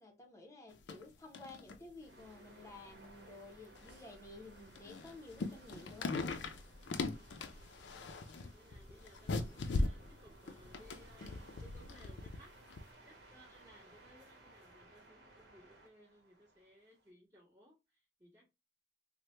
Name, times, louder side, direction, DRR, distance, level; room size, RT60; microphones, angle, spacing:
voice 1, 0.0-6.5, left 2 dB, 15° left, 0.7 m, -53 dB
sound 1, 0.7-1.1 1.3-1.8 2.2-2.3 3.0-3.1 3.8-4.1 4.6-12.4 12.7-12.8, left 3 dB, 75° left, 0.4 m, -40 dB
sound 2, 2.0-17.1, right 1 dB, 65° right, 1.0 m, -60 dB
voice 2, 7.8-12.5 13.0-18.5, equal, 25° right, 1.6 m, -62 dB
3.2 x 2.1 x 3.0 m
head